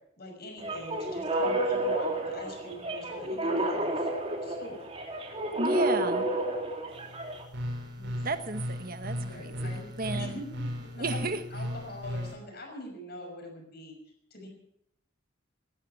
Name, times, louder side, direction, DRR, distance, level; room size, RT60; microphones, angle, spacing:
voice 1, 0.2-4.1 4.4-4.9 8.0-8.2 9.2-11.2 11.5-13.9 14.3-14.5, left 1 dB, 55° left, 3 dB, 6.0 m, -43 dB
sound 1, 0.6-7.4, right 1 dB, 30° right, 2.9 m, -30 dB
voice 2, 5.6-6.3 8.2-10.4 11.0-11.4, right 3 dB, 50° right, 9 dB, 1.4 m, -33 dB
sound 2, 6.9-12.3, equal, 65° right, 5.0 m, -36 dB
18.0 x 13.0 x 6.0 m, 0.75 s
head